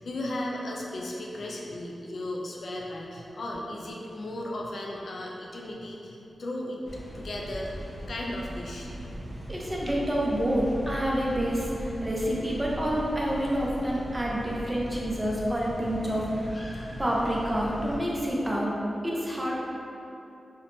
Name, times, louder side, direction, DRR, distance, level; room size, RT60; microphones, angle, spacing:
voice 1, 0.0-6.8 7.1-7.8 8.1-9.2, left 1 dB, 65° left, -2 dB, 0.3 m, -36 dB
sound 1, 6.8-18.0, equal, 15° left, 0.7 m, -39 dB
voice 2, 9.5-18.7 19.0-19.6, equal, 20° right, -4 dB, 0.5 m, -28 dB
2.7 x 2.1 x 2.9 m, 2.8 s
cardioid pair, 65°, 0 cm